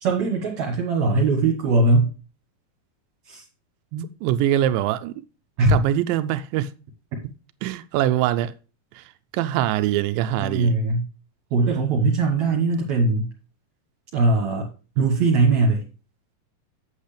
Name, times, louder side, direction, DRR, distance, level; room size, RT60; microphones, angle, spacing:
voice 1, 0.0-2.1 3.3-3.4 3.9-4.1 5.6-5.8 10.4-11.1 11.5-13.3 14.1-14.7 15.0-15.8, right 3 dB, 60° right, 2.5 m, -20 dB
voice 2, 4.2-5.1 5.7-6.7 7.6-8.5 9.0-9.1 9.3-10.7, right 12 dB, 85° right, 2.3 m, -23 dB
8.2 x 8.2 x 3.3 m
omnidirectional pair, 4.0 m